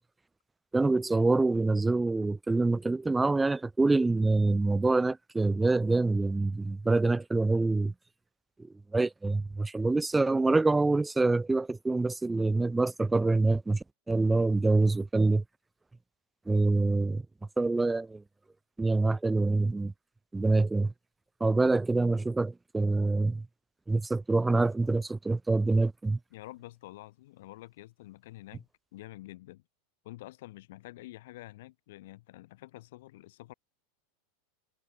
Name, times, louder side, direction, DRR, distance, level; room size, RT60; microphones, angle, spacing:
voice 1, 0.7-7.9 8.9-15.4 16.5-17.2 17.6-18.2 18.8-19.9 20.3-20.9 21.4-23.5 23.9-26.2, right 3 dB, 10° right, 0.5 m, -26 dB
voice 2, 26.3-29.6 30.0-33.5, left 17 dB, 65° left, 5.3 m, -48 dB
hypercardioid pair, 90°, 0 cm